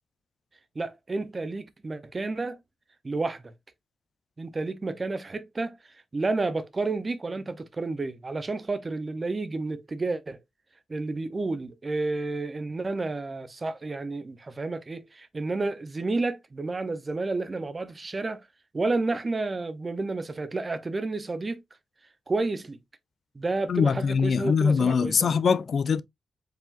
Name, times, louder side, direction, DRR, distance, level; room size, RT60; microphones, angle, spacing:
voice 1, 0.8-2.6 3.0-3.5 4.4-5.8 6.1-10.4 10.9-18.4 18.7-21.6 22.3-22.8 23.3-25.4, right 3 dB, 35° right, 0.7 m, -30 dB
voice 2, 23.7-26.0, left 6 dB, 60° left, 0.3 m, -23 dB
4.8 x 3.5 x 2.5 m
cardioid pair, 85°, 0 cm